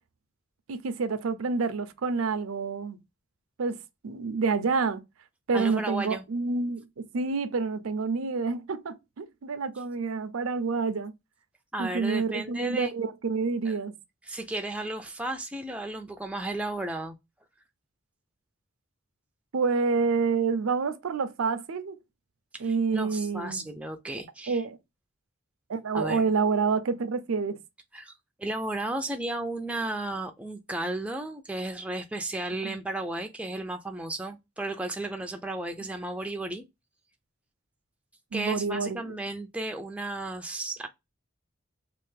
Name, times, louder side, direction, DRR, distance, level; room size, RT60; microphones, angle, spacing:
voice 1, 0.7-3.0 3.6-3.8 4.0-5.0 5.5-6.9 7.1-11.1 11.8-13.9 19.5-22.0 22.6-23.6 24.5-24.8 25.7-27.6 32.6-32.8 38.3-39.2, right 4 dB, 85° right, 0.5 m, -28 dB
voice 2, 5.5-6.2 11.7-12.9 13.7-13.8 14.3-17.2 22.5-24.6 25.9-26.3 27.9-28.1 28.4-36.6 38.3-40.9, right 2 dB, 5° right, 0.3 m, -34 dB
3.2 x 2.5 x 3.2 m
head